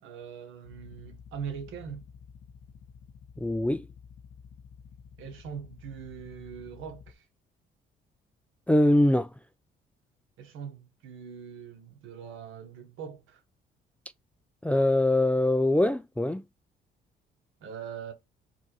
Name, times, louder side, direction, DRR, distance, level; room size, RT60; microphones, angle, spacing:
voice 1, 0.0-2.0 5.2-7.3 10.4-13.4 17.6-18.1, right 7 dB, 90° right, 1.4 m, -41 dB
sound 1, 0.6-7.1, left 6 dB, 75° left, 0.8 m, -51 dB
voice 2, 3.4-3.8 8.7-9.3 14.6-16.4, left 1 dB, 5° left, 0.3 m, -23 dB
4.6 x 2.6 x 4.5 m
cardioid pair, 90°, 20 cm